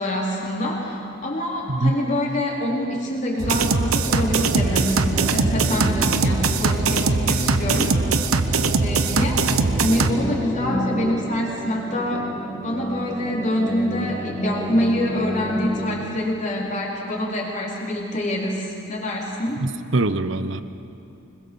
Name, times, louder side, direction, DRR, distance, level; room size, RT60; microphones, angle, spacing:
voice 1, 0.0-8.0 8.8-9.4 9.8-12.3 12.6-19.7, left 1 dB, 35° left, -3 dB, 4.0 m, -26 dB
sound 1, 3.4-10.1, right 4 dB, 80° right, 1.0 m, -21 dB
sound 2, 4.0-16.0, equal, 5° right, 2.8 m, -30 dB
voice 2, 19.6-20.6, right 2 dB, 60° right, 12 dB, 0.9 m, -23 dB
25.0 x 21.5 x 7.1 m, 2.6 s
head